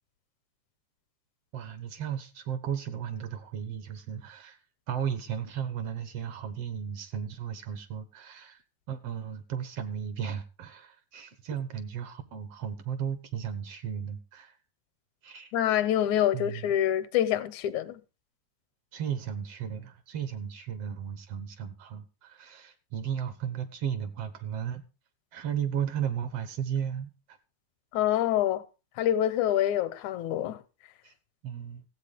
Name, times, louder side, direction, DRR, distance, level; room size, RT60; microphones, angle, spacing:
voice 1, 1.5-4.6 4.9-8.6 8.9-14.6 15.2-15.5 16.3-16.7 18.9-24.8 25.3-27.4 31.0-31.1 31.4-31.8, right 8 dB, 60° right, 2.0 m, -35 dB
voice 2, 15.5-18.0 27.9-28.6 29.0-30.6, left 11 dB, 80° left, 2.2 m, -26 dB
15.0 x 8.1 x 5.0 m
omnidirectional pair, 3.3 m